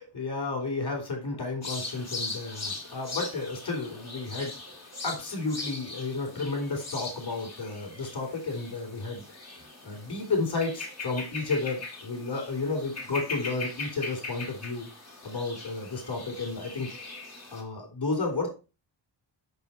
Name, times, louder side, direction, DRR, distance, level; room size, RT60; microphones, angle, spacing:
voice 1, 0.0-4.5 5.0-9.2 9.8-14.9 15.2-16.9 17.5-18.5, left 3 dB, 50° left, 3 dB, 3.5 m, -32 dB
sound 1, 1.6-17.6, left 3 dB, 30° left, 3.2 m, -40 dB
6.4 x 5.4 x 4.4 m, 0.31 s
wide cardioid pair, 115°, 49 cm